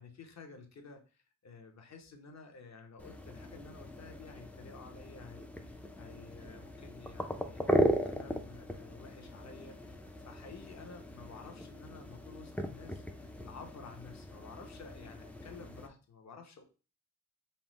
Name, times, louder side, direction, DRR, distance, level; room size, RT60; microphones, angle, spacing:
voice 1, 0.0-16.6, left 4 dB, 50° left, 4 dB, 0.8 m, -52 dB
sound 1, 3.0-15.9, equal, 5° left, 0.3 m, -38 dB
5.4 x 2.0 x 3.0 m, 0.34 s
wide cardioid pair, 135°, 35 cm